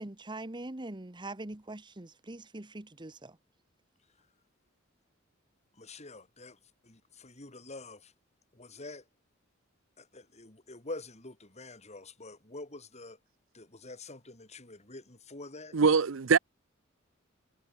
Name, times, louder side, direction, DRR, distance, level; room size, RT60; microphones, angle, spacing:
voice 1, 0.0-3.4, right 2 dB, 25° right, 1.2 m, -42 dB
voice 2, 5.7-8.1 8.5-9.1 10.0-13.2 13.5-15.8, left 2 dB, 35° left, 3.7 m, -46 dB
voice 3, 15.7-16.4, right 5 dB, 80° right, 0.7 m, -23 dB
head